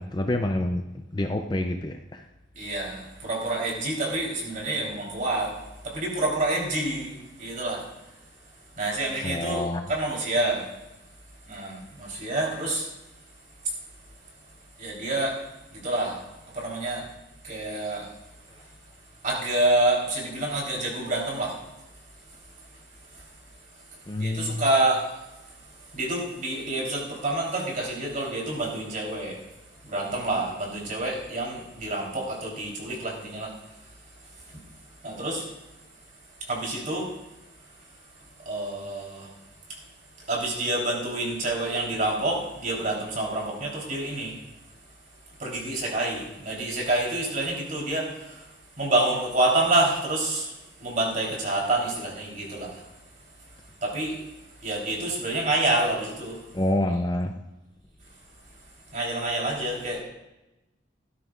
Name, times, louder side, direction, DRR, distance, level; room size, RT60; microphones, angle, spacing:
voice 1, 0.0-2.2 9.2-9.8 16.9-17.0 24.1-24.7 56.5-57.3, left 1 dB, 20° left, 5 dB, 0.5 m, -28 dB
voice 2, 2.6-5.5 5.8-7.8 8.8-9.6 9.9-10.6 11.5-12.9 14.8-15.4 15.7-16.2 16.5-17.0 17.4-18.1 19.2-21.5 24.2-25.0 25.9-29.4 29.8-33.5 35.0-35.4 36.5-37.1 38.5-39.3 40.3-44.3 45.4-48.1 48.8-50.5 50.8-52.7 53.8-54.1 54.6-56.4 58.9-60.0, right 2 dB, 40° right, -2 dB, 3.7 m, -27 dB
17.0 x 13.0 x 2.5 m, 0.97 s
head